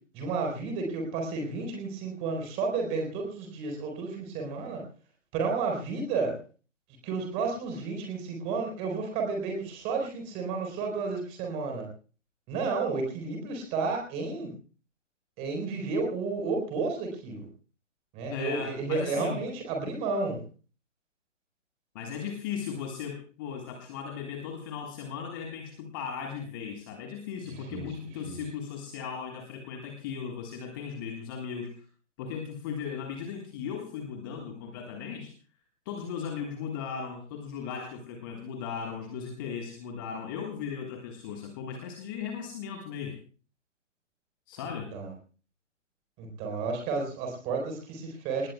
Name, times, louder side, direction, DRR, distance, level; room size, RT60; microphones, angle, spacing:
voice 1, 0.1-4.8 5.3-6.4 7.0-11.9 12.5-14.5 15.4-17.5 18.1-20.4 27.5-27.9 28.2-28.4 44.9-45.1 46.2-48.5, right 4 dB, 15° right, 2 dB, 4.3 m, -32 dB
voice 2, 18.3-19.5 21.9-31.8 32.2-35.3 35.8-43.2 44.5-44.9, left 7 dB, 15° left, 3 dB, 1.5 m, -37 dB
27.5 x 19.5 x 2.3 m, 0.38 s
figure-of-eight pair, 140°, 37 cm